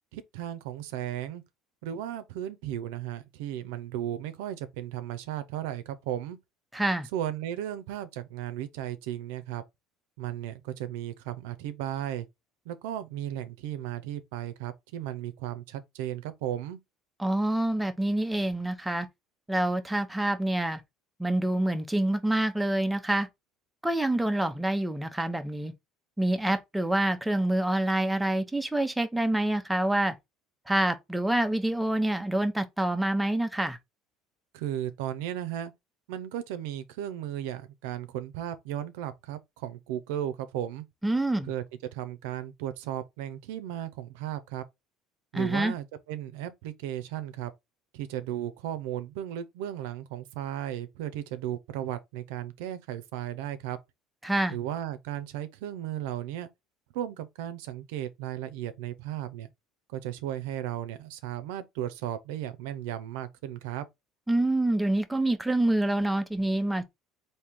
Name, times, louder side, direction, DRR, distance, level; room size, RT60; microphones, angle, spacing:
voice 1, 0.1-1.4 1.8-6.4 7.1-9.6 10.2-12.3 12.7-16.8 34.5-35.7 36.1-40.8 41.4-41.6 41.9-44.7 45.3-47.5 47.9-53.8 54.5-56.5 56.9-59.5 59.9-63.9, right 11 dB, 85° right, 0.6 m, -35 dB
voice 2, 6.7-7.1 17.2-19.1 19.5-20.8 21.2-23.3 23.8-25.7 26.2-30.1 30.7-33.8 41.0-41.5 45.3-45.7 54.2-54.6 64.3-66.8, right 1 dB, 5° right, 0.7 m, -26 dB
3.6 x 2.8 x 4.4 m
supercardioid pair, 110°, 0 cm